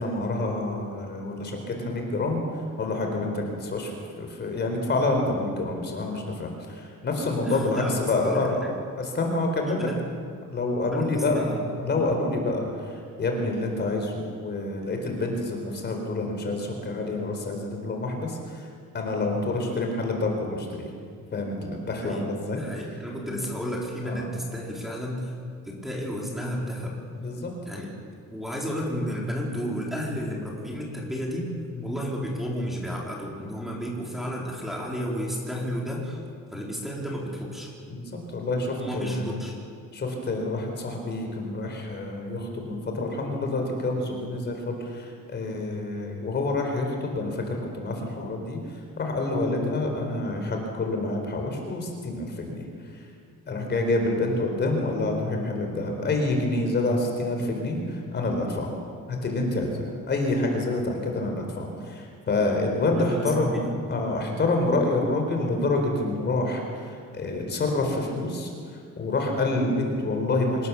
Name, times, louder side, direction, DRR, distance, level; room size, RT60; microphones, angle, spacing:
voice 1, 0.0-2.4 2.8-8.6 9.0-9.9 10.5-11.4 11.8-18.6 18.9-20.9 21.3-22.6 23.3-23.4 24.0-24.3 27.2-27.5 31.7-32.0 37.9-39.4 39.9-48.6 49.0-52.6 53.5-58.7 59.1-63.6 63.9-68.5 69.0-70.7, left 2 dB, 35° left, 2 dB, 4.3 m, -27 dB
voice 2, 7.4-8.6 9.7-10.0 10.9-11.6 22.0-22.2 22.5-25.3 25.6-26.9 27.7-27.9 28.3-31.5 31.8-36.2 36.5-37.7 38.8-39.5 63.0-63.7, equal, ahead, -4 dB, 4.1 m, -32 dB
26.5 x 17.5 x 7.1 m, 2.2 s
cardioid pair, 155°, 30 cm